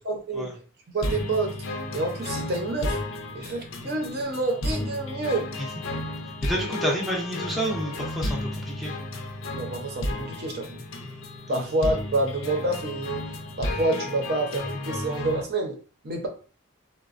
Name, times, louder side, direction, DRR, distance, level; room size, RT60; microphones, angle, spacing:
voice 1, 0.1-0.5 0.9-1.6 1.9-3.0 3.3-5.5 9.5-10.8 11.5-13.2 13.6-15.8 16.0-16.3, right 2 dB, 50° right, 2 dB, 0.6 m, -28 dB
sound 1, 1.0-15.4, left 1 dB, 75° left, 0.6 m, -33 dB
voice 2, 6.4-8.9 11.5-11.7, right 1 dB, ahead, -2 dB, 0.5 m, -29 dB
4.0 x 2.1 x 2.4 m, 0.38 s
head